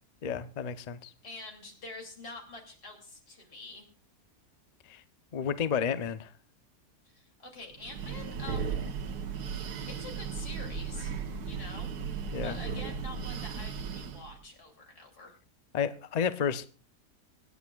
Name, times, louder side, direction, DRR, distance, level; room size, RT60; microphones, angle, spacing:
voice 1, 0.2-1.1 4.9-5.0 5.3-6.3 12.3-12.6 15.7-16.6, left 7 dB, 55° left, 12 dB, 0.4 m, -31 dB
voice 2, 1.2-3.9 7.0-8.8 9.9-11.1 11.4-11.9 12.4-15.3, left 3 dB, 80° left, 2 dB, 3.4 m, -46 dB
Breathing, 7.7-14.3, right 6 dB, 85° right, 1.6 m, -36 dB
25.5 x 9.4 x 2.3 m, 0.36 s
omnidirectional pair, 1.6 m